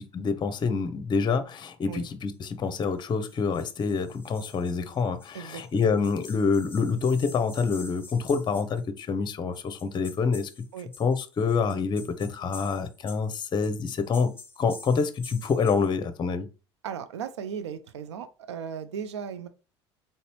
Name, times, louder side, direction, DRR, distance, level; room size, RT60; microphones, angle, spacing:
voice 1, 0.1-10.5 11.0-16.5, left 5 dB, 30° left, 0.7 m, -27 dB
sound 1, 2.4-8.8 9.5-15.9, left 3 dB, 15° left, 1.0 m, -48 dB
voice 2, 5.3-5.9 10.7-10.9 16.8-19.5, right 7 dB, 80° right, 0.5 m, -36 dB
4.0 x 3.7 x 2.9 m
hypercardioid pair, 70°, 14 cm